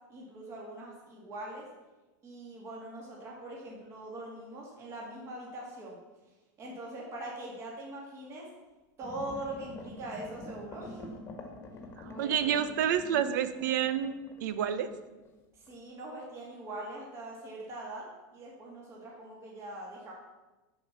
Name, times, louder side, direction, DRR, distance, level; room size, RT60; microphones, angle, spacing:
voice 1, 0.1-1.7 2.2-6.0 6.6-8.5 9.0-11.1 12.1-12.6 15.5-20.1, right 1 dB, 30° right, -3 dB, 2.2 m, -42 dB
sound 1, 9.0-15.3 15.7-15.8, left 1 dB, 25° left, 1.5 m, -47 dB
voice 2, 12.0-14.2 14.4-14.9, right 9 dB, 75° right, 11 dB, 0.8 m, -29 dB
10.0 x 4.6 x 7.0 m, 1.1 s
supercardioid pair, 155°, 10 cm